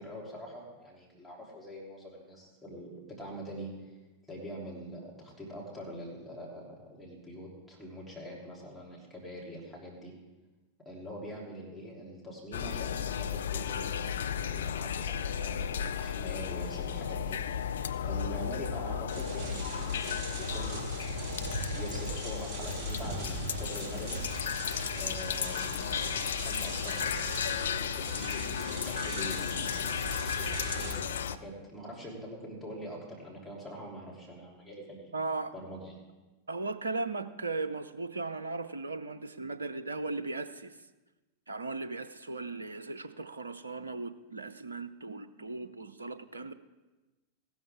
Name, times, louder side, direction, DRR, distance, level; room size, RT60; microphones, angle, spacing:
voice 1, 0.0-3.7 4.3-10.1 10.8-14.1 14.5-24.2 24.9-30.1 30.4-35.1 35.5-36.0, equal, ahead, -5 dB, 3.4 m, -44 dB
sound 1, 12.5-31.4, left 8 dB, 65° left, 0.4 m, -34 dB
Pushing Grocery Cart, 19.1-30.9, right 3 dB, 35° right, 3.1 m, -40 dB
voice 2, 35.1-35.5 36.5-40.8 41.5-46.5, right 3 dB, 75° right, 12 dB, 0.6 m, -37 dB
15.0 x 12.5 x 3.7 m, 1.1 s
figure-of-eight pair, 90°, 0 cm